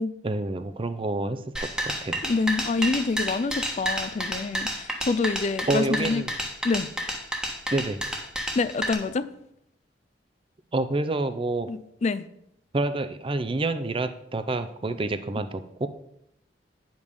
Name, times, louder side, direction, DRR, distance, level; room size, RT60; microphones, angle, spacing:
voice 1, 0.2-2.2 5.7-6.3 7.7-8.0 10.7-11.7 12.7-15.9, right 2 dB, 30° right, 10 dB, 0.5 m, -28 dB
sound 1, 1.6-8.9, equal, 5° right, 1.2 m, -30 dB
voice 2, 2.2-6.2 6.6-6.9 8.5-9.3 11.7-12.2, left 4 dB, 40° left, 14 dB, 0.4 m, -26 dB
9.7 x 5.2 x 5.3 m, 0.77 s
head